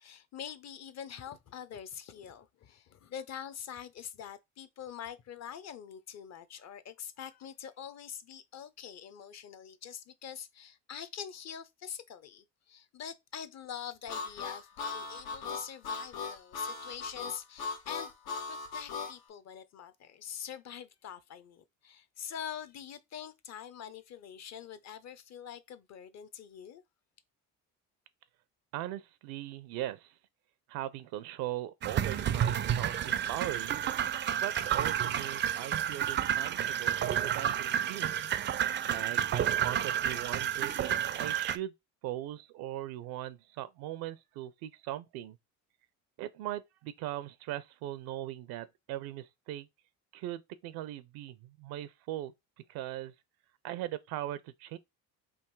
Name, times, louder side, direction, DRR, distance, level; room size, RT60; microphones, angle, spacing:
voice 1, 0.0-18.1 18.5-26.8, left 9 dB, 45° left, 0.7 m, -45 dB
Harmonica, 14.1-19.2, left 4 dB, 90° left, 1.2 m, -38 dB
voice 2, 28.7-30.1 30.7-33.8 34.4-38.2 38.9-41.7 42.0-45.4 46.2-49.7 50.1-52.3 52.7-53.1 53.6-54.8, right 14 dB, 80° right, 0.6 m, -39 dB
sound 1, 31.8-41.6, right 9 dB, 35° right, 0.4 m, -30 dB
3.6 x 2.7 x 4.5 m
cardioid pair, 100°, 36 cm